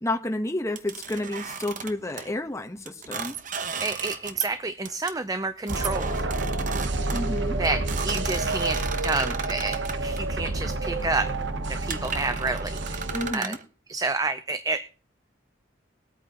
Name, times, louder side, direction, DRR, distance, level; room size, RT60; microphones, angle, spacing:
voice 1, 0.0-3.4 7.1-7.6 13.1-13.6, left 1 dB, 15° left, 4 dB, 1.1 m, -30 dB
sound 1, 0.8-2.3 2.9-4.6 4.8-5.1 5.7-10.2 11.0-11.2 11.6-11.7 11.9-13.6, right 6 dB, 45° right, 1.1 m, -34 dB
voice 2, 3.8-6.1 7.6-11.3 11.7-13.5 13.9-14.8, right 3 dB, 20° right, 10 dB, 0.6 m, -29 dB
sound 2, 5.7-13.3, right 2 dB, 70° right, 1.1 m, -29 dB
21.5 x 9.0 x 3.0 m, 0.38 s
head